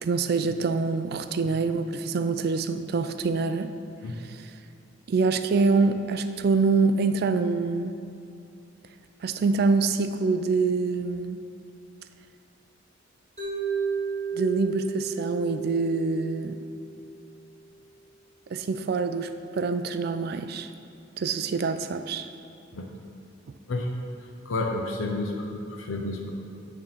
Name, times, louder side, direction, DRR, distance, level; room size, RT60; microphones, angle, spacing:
voice 1, 0.0-3.7 4.2-4.5 5.1-7.9 9.2-11.4 14.3-16.6 18.5-20.7 21.2-22.3, right 4 dB, 50° right, 10 dB, 0.3 m, -25 dB
Mallet percussion, 13.4-17.5, right 5 dB, 30° right, 1.2 m, -33 dB
voice 2, 24.5-26.3, left 2 dB, 80° left, 1 dB, 0.7 m, -30 dB
9.1 x 3.7 x 5.6 m, 2.5 s
head